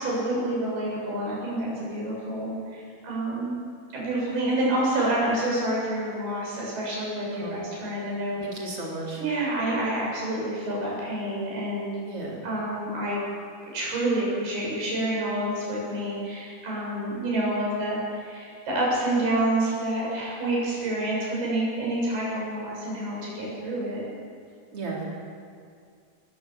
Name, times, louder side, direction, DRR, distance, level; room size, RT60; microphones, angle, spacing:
voice 1, 0.0-3.6 3.9-8.4 9.2-11.9 12.4-13.2 13.7-24.0, right 1 dB, 75° right, -5 dB, 9.1 m, -28 dB
voice 2, 8.4-9.2 12.0-12.4 24.7-25.0, right 3 dB, 35° right, -3 dB, 4.8 m, -34 dB
22.5 x 15.5 x 7.5 m, 2.2 s
omnidirectional pair, 4.5 m